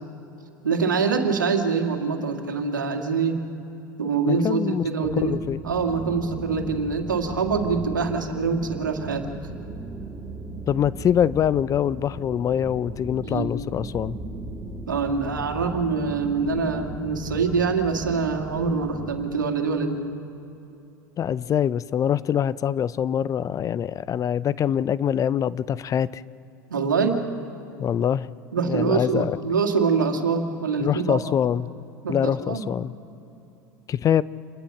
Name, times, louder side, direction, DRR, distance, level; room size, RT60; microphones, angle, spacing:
voice 1, 0.6-3.4 4.0-5.3 5.6-9.3 13.2-13.5 14.9-20.0 26.7-27.2 28.5-31.2 32.0-32.6, right 5 dB, 90° right, 4 dB, 2.2 m, -24 dB
voice 2, 4.3-5.6 10.7-14.2 21.2-26.2 27.8-28.3 28.6-29.4 30.8-31.7 32.1-32.9 33.9-34.2, left 9 dB, 35° left, 19 dB, 0.5 m, -24 dB
sound 1, 5.0-19.3, right 2 dB, 20° right, 2.3 m, -37 dB
27.5 x 21.0 x 6.0 m, 3.0 s
hypercardioid pair, 80°, 10 cm